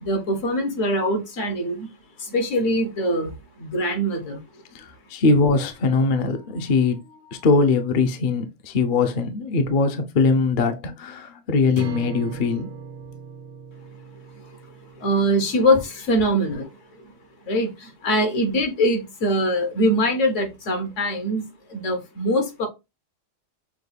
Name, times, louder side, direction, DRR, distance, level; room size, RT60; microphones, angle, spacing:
voice 1, 0.0-1.9 2.3-3.3 3.6-4.4 15.0-16.7 17.5-21.4 21.7-22.7, equal, 70° left, 1.4 m, -22 dB
voice 2, 4.7-12.7, left 4 dB, 50° left, 0.6 m, -21 dB
sound 1, 11.7-16.1, right 5 dB, 60° right, 0.8 m, -38 dB
5.9 x 2.2 x 3.3 m
omnidirectional pair, 1.3 m